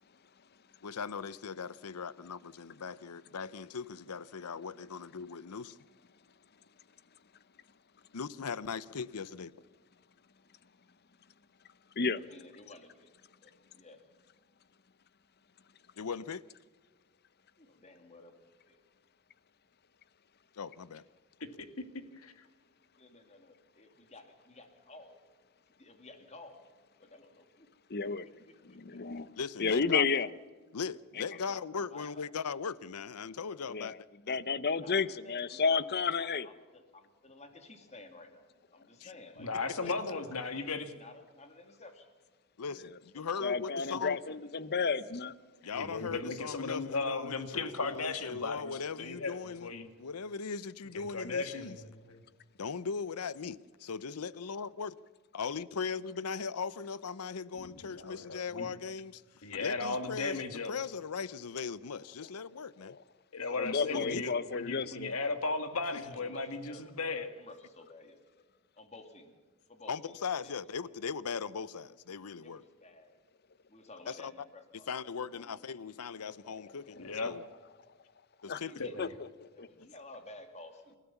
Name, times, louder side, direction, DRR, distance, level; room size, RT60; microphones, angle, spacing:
voice 1, 0.8-5.7 8.1-9.5 16.0-16.4 20.6-21.0 29.4-30.1 30.7-34.0 34.3-34.4 39.0-39.1 39.9-40.0 42.6-44.2 45.6-49.7 50.0-51.8 52.6-54.9 55.3-59.2 59.6-63.0 63.9-64.2 69.9-72.6 74.2-74.3 74.9-77.4 78.4-78.7, left 5 dB, 90° left, 0.7 m, -39 dB
voice 2, 12.1-13.1 13.4-14.0 17.6-18.8 23.0-25.2 25.8-26.7 27.0-27.7 28.0-29.2 29.9-30.2 31.3-31.6 31.9-32.3 34.7-42.1 43.1-43.4 43.9-44.5 65.9-68.5 68.8-69.4 69.7-70.5 70.8-70.9 72.4-73.2 73.7-74.9 75.3-75.7 78.5-79.1 79.5-81.0, left 2 dB, 30° left, 2.6 m, -54 dB
voice 3, 27.9-28.3 28.7-29.3 29.6-30.3 33.7-34.0 34.3-36.5 43.4-45.3 62.8-63.0 63.5-65.1 78.5-78.6 79.0-79.1 79.6-79.7, left 5 dB, 45° left, 0.8 m, -31 dB
voice 4, 39.4-40.9 45.6-49.9 50.9-52.2 57.5-58.7 59.4-60.7 63.3-67.3 77.0-77.3 78.8-79.1, left 3 dB, 75° left, 1.9 m, -36 dB
28.5 x 13.5 x 7.1 m
head